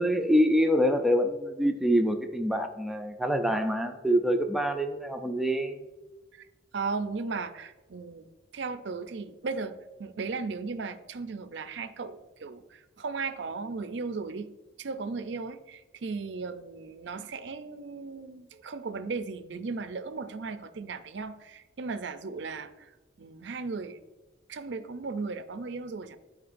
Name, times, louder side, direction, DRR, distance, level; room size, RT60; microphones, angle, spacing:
voice 1, 0.0-5.9, equal, ahead, 5 dB, 0.4 m, -25 dB
voice 2, 6.7-8.3 8.5-9.7 10.0-14.5 14.8-22.9 23.2-24.0 24.5-26.2, right 4 dB, 70° right, 10 dB, 0.5 m, -36 dB
11.5 x 4.4 x 2.6 m, 1.1 s
head